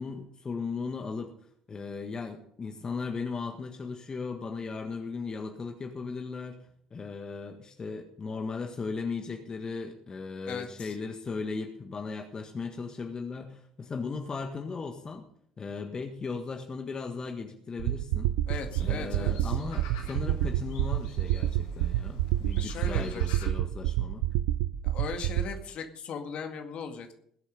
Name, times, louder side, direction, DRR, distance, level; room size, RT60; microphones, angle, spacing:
voice 1, 0.0-1.3 1.7-6.6 6.9-15.2 15.6-18.3 18.8-24.3, left 4 dB, 30° left, 4 dB, 1.6 m, -37 dB
voice 2, 10.5-11.0 18.5-19.6 22.6-23.5 24.8-27.1, left 6 dB, 50° left, 5 dB, 2.0 m, -38 dB
sound 1, 17.8-25.5, right 14 dB, 65° right, 0.5 m, -29 dB
sound 2, 18.5-23.5, left 3 dB, 75° left, 3.7 m, -49 dB
20.5 x 8.2 x 5.3 m, 0.68 s
figure-of-eight pair, 50°, 2 cm